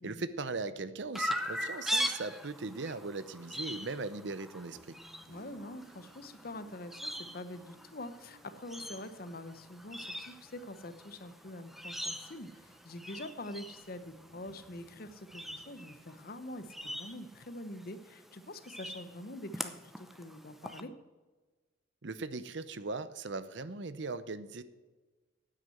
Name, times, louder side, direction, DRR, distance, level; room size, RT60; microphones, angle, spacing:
voice 1, 0.0-5.0 22.0-24.6, right 3 dB, 65° right, 14 dB, 0.7 m, -39 dB
Chirp tweet, 1.2-20.8, equal, ahead, 0.7 m, -42 dB
Toilet flush, 4.6-17.4, right 3 dB, 85° right, 4.2 m, -64 dB
voice 2, 5.3-20.9, left 1 dB, 50° left, 12 dB, 0.9 m, -45 dB
9.5 x 8.3 x 7.7 m, 1.3 s
head